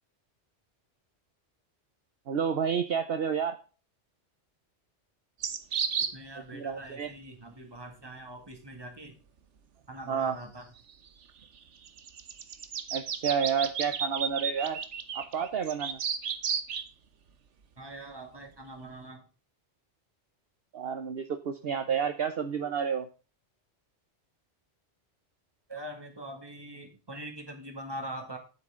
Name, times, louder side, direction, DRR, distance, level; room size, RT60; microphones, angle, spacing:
voice 1, 2.3-3.6 6.5-7.1 10.1-10.4 12.9-14.8 15.1-16.0 20.7-23.1, right 7 dB, 60° right, 9 dB, 1.0 m, -30 dB
sound 1, 5.4-6.1 10.9-11.0 11.9-16.9, right 7 dB, 80° right, 1.3 m, -33 dB
voice 2, 6.1-9.1 9.9-10.6 17.8-19.2 25.7-28.4, right 1 dB, 20° right, 3 dB, 2.2 m, -43 dB
9.5 x 8.3 x 3.7 m, 0.35 s
omnidirectional pair, 1.2 m